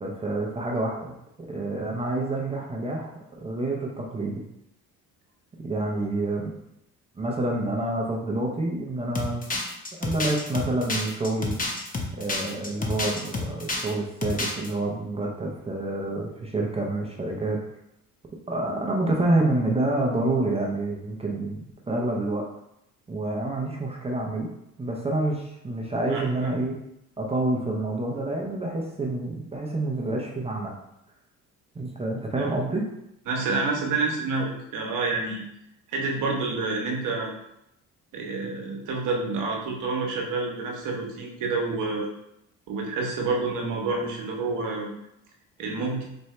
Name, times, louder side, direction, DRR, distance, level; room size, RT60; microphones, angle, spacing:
voice 1, 0.0-1.1 1.4-3.1 3.4-4.3 5.6-6.5 7.2-9.5 10.0-11.5 12.1-17.6 18.5-22.4 23.1-24.5 24.8-26.8 27.2-30.7 31.7-32.8, right 2 dB, 20° right, -1 dB, 0.6 m, -28 dB
sound 1, 9.2-13.9 14.2-14.7, left 2 dB, 25° left, 0.8 m, -29 dB
voice 2, 26.1-26.5 32.4-32.5 33.3-35.4 35.9-37.3 38.1-42.1 42.7-44.9 45.6-46.0, right 3 dB, 70° right, 1 dB, 1.0 m, -28 dB
4.3 x 2.6 x 3.2 m, 0.81 s
cardioid pair, 100°, 32 cm